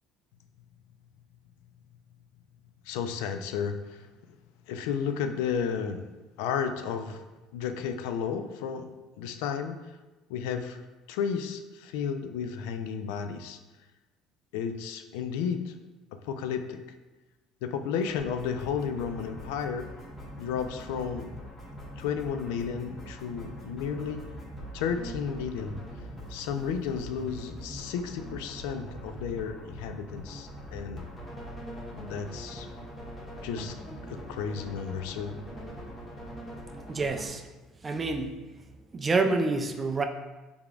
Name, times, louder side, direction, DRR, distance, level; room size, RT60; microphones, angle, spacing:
voice 1, 2.9-4.1 4.7-6.0 6.4-7.2 7.5-8.9 9.2-9.8 10.3-10.8 11.1-13.6 14.5-15.7 16.1-16.8 17.6-19.9 20.4-21.3 22.0-24.3 24.7-25.8 26.3-31.1 31.9-32.7 33.4-33.8 34.1-35.3, left 7 dB, 85° left, 8 dB, 0.3 m, -33 dB
sound 1, 18.0-37.3, equal, 20° left, 0.9 m, -42 dB
voice 2, 36.9-37.4 37.8-38.4 38.9-40.0, right 3 dB, 20° right, 6 dB, 0.3 m, -27 dB
4.9 x 3.5 x 2.4 m, 1.1 s
cardioid pair, 155°, 0 cm